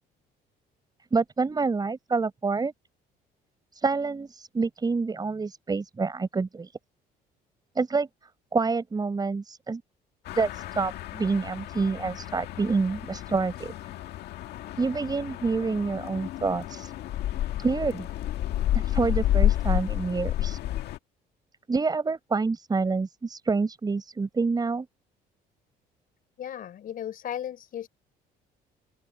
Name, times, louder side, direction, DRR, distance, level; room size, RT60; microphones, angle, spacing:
voice 1, 1.1-2.7 3.7-6.7 7.7-8.1 8.5-9.8 10.3-13.7 14.8-16.9 17.6-18.1 18.7-20.6 21.7-24.9, right 4 dB, 25° right, 4.5 m, -27 dB
sound 1, 10.2-21.0, left 13 dB, 75° left, 1.9 m, -30 dB
voice 2, 26.4-27.9, left 10 dB, 55° left, 5.5 m, -35 dB
open air
cardioid pair, 110°, 17 cm